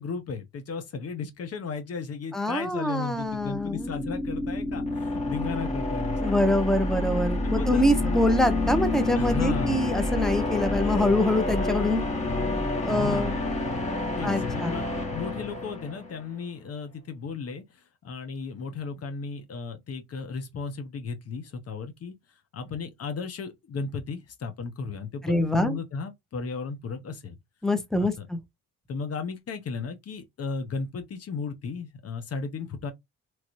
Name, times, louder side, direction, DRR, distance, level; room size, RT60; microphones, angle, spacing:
voice 1, 0.0-6.2 7.4-8.2 9.2-9.9 12.9-13.4 14.2-14.8 15.1-22.1 22.5-27.4 28.0-28.3 28.9-32.9, left 5 dB, 50° left, 0.9 m, -35 dB
voice 2, 2.3-3.9 6.2-12.0 12.8-13.3 14.2-14.7 25.2-25.8 27.6-28.4, left 1 dB, ahead, 0.7 m, -25 dB
sound 1, 3.3-16.2, left 2 dB, 20° left, 1.4 m, -28 dB
3.1 x 2.6 x 3.0 m
cardioid pair, 90°, 30 cm